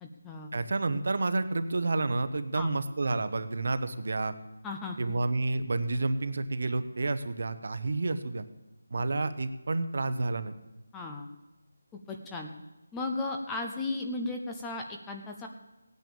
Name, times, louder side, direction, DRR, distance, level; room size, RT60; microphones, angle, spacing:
voice 1, 0.0-0.5 2.6-2.7 4.6-5.1 9.2-9.3 10.9-11.3 11.9-12.5 12.9-15.5, left 2 dB, 5° left, 2 dB, 0.6 m, -36 dB
voice 2, 0.5-4.3 5.0-8.4 8.9-10.6, right 3 dB, 50° right, 11 dB, 1.0 m, -30 dB
17.5 x 9.3 x 7.0 m, 1.0 s
figure-of-eight pair, 175°, 0 cm